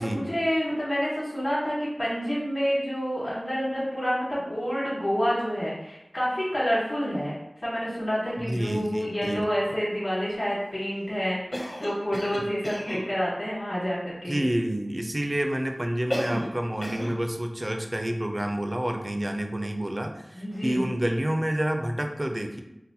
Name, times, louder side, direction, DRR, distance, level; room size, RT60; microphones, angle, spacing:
voice 1, 0.0-7.3 7.6-14.4 20.3-20.9, equal, 40° left, -9 dB, 1.1 m, -28 dB
voice 2, 8.4-9.4 14.3-22.6, right 1 dB, 35° right, 4 dB, 0.3 m, -28 dB
Cough, 11.5-13.1 16.1-16.6 16.8-17.2, equal, 25° left, 0.6 m, -32 dB
3.9 x 2.1 x 2.6 m, 0.88 s
wide cardioid pair, 50°, 0 cm